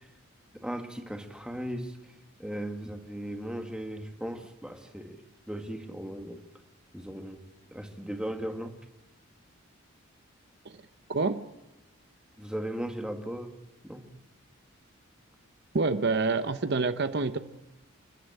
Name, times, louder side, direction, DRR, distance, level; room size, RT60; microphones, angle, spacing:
voice 1, 0.5-2.0 2.4-6.4 6.9-7.4 7.7-8.8 12.4-13.5 13.8-14.1, right 1 dB, 5° right, 5 dB, 1.8 m, -37 dB
voice 2, 11.1-11.5 15.7-17.4, right 3 dB, 50° right, 10 dB, 0.8 m, -27 dB
29.0 x 11.5 x 9.0 m, 0.97 s
head